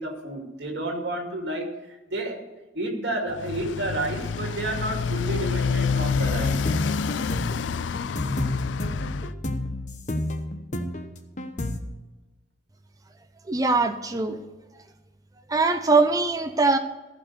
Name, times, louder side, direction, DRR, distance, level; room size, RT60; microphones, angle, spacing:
voice 1, 0.0-1.8 2.1-2.4 2.7-6.6, right 1 dB, 65° right, 2 dB, 2.3 m, -30 dB
Motorcycle, 3.3-9.3, left 5 dB, 80° left, 0.4 m, -28 dB
sound 1, 6.1-11.8, left 1 dB, 40° left, 1.0 m, -31 dB
voice 2, 13.5-14.4 15.5-16.8, right 3 dB, 20° right, 6 dB, 0.7 m, -21 dB
15.0 x 5.6 x 6.8 m, 1.2 s
head